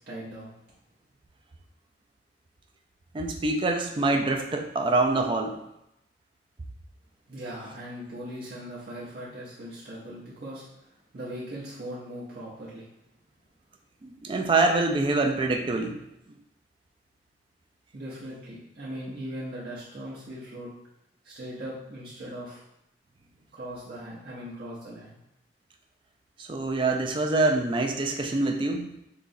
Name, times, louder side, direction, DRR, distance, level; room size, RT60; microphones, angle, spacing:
voice 1, 0.1-0.6 7.3-12.9 17.9-20.7 21.2-22.6 23.5-25.2, equal, 60° right, -8 dB, 0.7 m, -39 dB
voice 2, 3.1-5.6 14.0-16.0 26.4-29.0, right 2 dB, 30° right, 3 dB, 0.3 m, -25 dB
3.8 x 3.0 x 2.6 m, 0.85 s
head